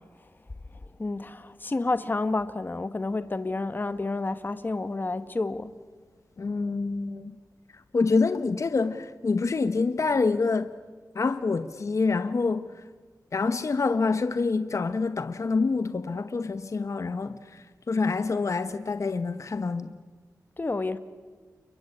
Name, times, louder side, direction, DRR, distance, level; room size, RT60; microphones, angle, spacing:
voice 1, 1.0-5.7 20.6-21.0, left 2 dB, 30° left, 1.2 m, -29 dB
voice 2, 6.4-7.3 7.9-10.7 11.1-12.6 13.3-20.0, left 4 dB, 50° left, 1.1 m, -26 dB
29.5 x 23.5 x 8.7 m
wide cardioid pair, 95°, 6 cm